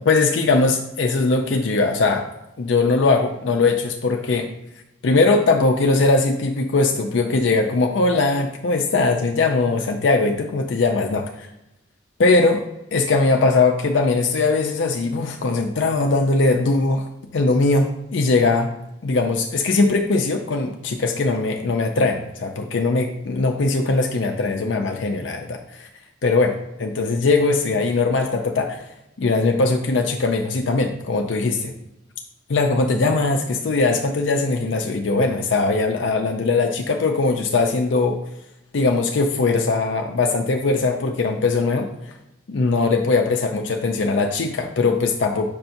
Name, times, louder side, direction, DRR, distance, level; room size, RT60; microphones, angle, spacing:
voice 1, 0.0-2.3 2.6-4.5 5.0-11.3 12.2-12.6 12.9-18.7 19.0-25.9 26.2-28.8 29.2-31.7 32.5-38.2 38.7-41.9 42.5-45.5, left 3 dB, 75° left, 3 dB, 0.5 m, -20 dB
6.7 x 2.6 x 5.7 m, 0.88 s
head